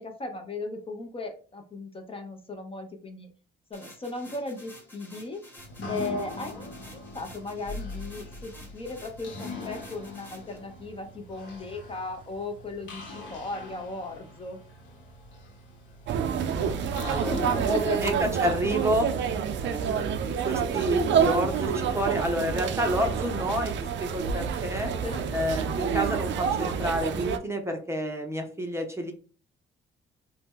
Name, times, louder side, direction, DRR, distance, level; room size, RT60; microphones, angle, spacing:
voice 1, 0.0-3.3 3.7-5.4 5.9-14.6 17.1-18.1 22.1-22.2 25.0-25.2, left 2 dB, 30° left, 4 dB, 0.7 m, -36 dB
sound 1, 3.7-10.6, equal, 10° left, 1.3 m, -51 dB
sound 2, 5.6-23.4, left 2 dB, 65° left, 1.0 m, -43 dB
sound 3, 16.1-27.4, right 7 dB, 65° right, 0.5 m, -28 dB
voice 2, 16.2-16.8 17.1-17.4 18.0-19.1 19.6-23.7 24.0-24.9 25.3-29.1, equal, 15° right, 3 dB, 0.6 m, -29 dB
2.8 x 2.1 x 3.5 m, 0.40 s
cardioid pair, 90°, 20 cm